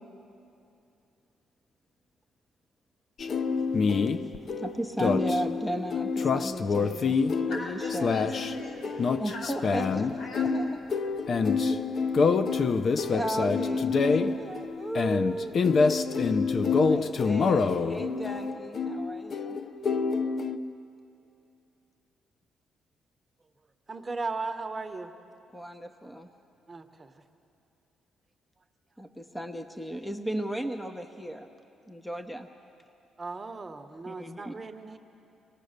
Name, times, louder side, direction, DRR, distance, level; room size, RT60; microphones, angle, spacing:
sound 1, 3.2-20.6, left 4 dB, 50° left, 0.7 m, -26 dB
voice 1, 4.6-7.2 7.5-8.1 9.2-10.8 13.1-15.5 16.4-19.6 25.5-26.3 29.0-31.5 31.9-32.5 34.1-34.5, right 1 dB, 10° left, 6 dB, 0.9 m, -35 dB
voice 2, 7.5-9.7 10.2-10.6, left 2 dB, 80° left, -1 dB, 5.4 m, -40 dB
voice 3, 23.9-25.1 26.7-27.1 33.2-35.0, right 3 dB, 25° right, 7 dB, 1.1 m, -36 dB
25.5 x 18.5 x 6.6 m, 2.7 s
cardioid pair, 90°, 0 cm